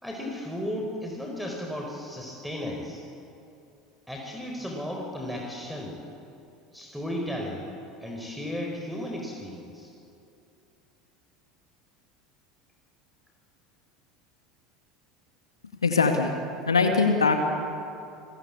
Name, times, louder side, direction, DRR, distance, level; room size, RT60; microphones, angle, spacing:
voice 1, 0.0-3.0 4.1-6.0 6.7-7.6 8.0-9.9, left 1 dB, ahead, 0 dB, 4.6 m, -34 dB
voice 2, 15.8-16.3 16.7-17.4, left 4 dB, 80° left, 4 dB, 1.9 m, -21 dB
30.0 x 21.5 x 8.7 m, 2.7 s
figure-of-eight pair, 75°, 3 cm